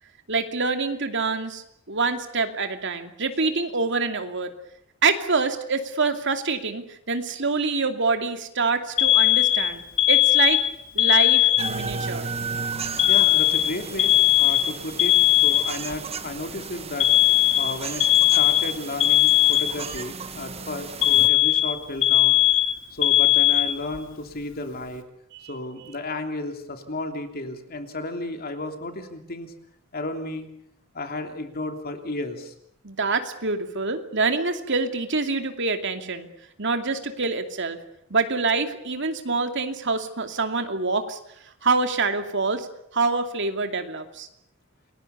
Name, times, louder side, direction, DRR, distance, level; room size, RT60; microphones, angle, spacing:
voice 1, 0.3-4.5 5.0-10.6 10.9-12.3 25.4-25.5 32.8-36.3 36.6-37.8 38.1-41.2 41.6-42.7 42.9-44.3, right 4 dB, 60° right, 6 dB, 2.7 m, -26 dB
Alarm, 9.0-11.9 13.0-16.0 17.0-20.0 21.0-24.0, left 14 dB, 65° left, 2.6 m, -19 dB
sound 1, 11.6-21.3, right 5 dB, 30° right, 1.5 m, -35 dB
voice 2, 13.1-17.1 17.6-18.1 18.3-22.6 22.9-25.0 25.5-29.5 29.9-30.5 30.9-32.5, left 2 dB, 45° left, 5 dB, 3.1 m, -33 dB
29.0 x 20.5 x 7.0 m, 0.74 s
head